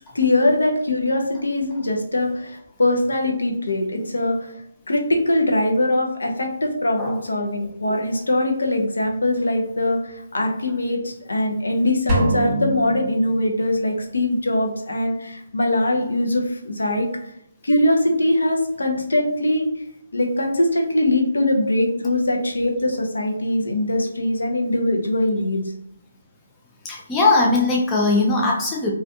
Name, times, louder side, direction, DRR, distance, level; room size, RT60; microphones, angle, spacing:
voice 1, 0.1-4.5 4.9-17.3 17.6-19.7 20.1-25.6, left 1 dB, 60° left, 1 dB, 0.7 m, -22 dB
sound 1, 12.1-13.9, right 1 dB, 15° right, 0.8 m, -24 dB
voice 2, 26.8-28.9, left 3 dB, 10° left, -3 dB, 0.4 m, -19 dB
3.1 x 2.4 x 2.7 m, 0.73 s
figure-of-eight pair, 145°, 0 cm